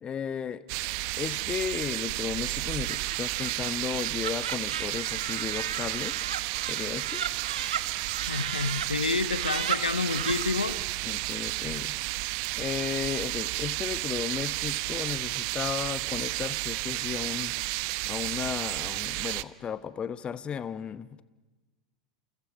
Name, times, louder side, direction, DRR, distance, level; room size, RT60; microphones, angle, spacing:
voice 1, 0.0-0.6 1.2-6.2 6.7-7.2 11.0-11.9 12.6-17.5 18.0-21.2, left 8 dB, 25° left, 15 dB, 1.0 m, -34 dB
sound 1, 0.7-19.4, right 21 dB, 50° right, 0.8 m, -32 dB
Laughter, 2.7-8.9 9.2-10.4, right 8 dB, 75° right, 1.5 m, -36 dB
voice 2, 8.2-10.8, left 4 dB, 85° left, 14 dB, 1.0 m, -29 dB
29.5 x 28.5 x 6.0 m, 1.2 s
figure-of-eight pair, 85°, 4 cm